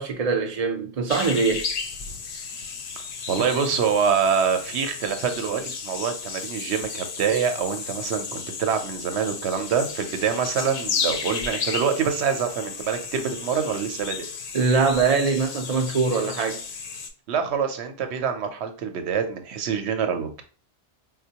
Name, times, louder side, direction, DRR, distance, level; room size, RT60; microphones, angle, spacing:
voice 1, 0.0-1.7 14.5-16.6, right 4 dB, 45° right, 0.6 m, -22 dB
sound 1, 1.1-17.1, left 5 dB, 65° left, 0.7 m, -33 dB
voice 2, 3.3-14.3 17.3-20.4, right 6 dB, 80° right, 0.9 m, -25 dB
4.3 x 2.2 x 2.8 m
omnidirectional pair, 1.1 m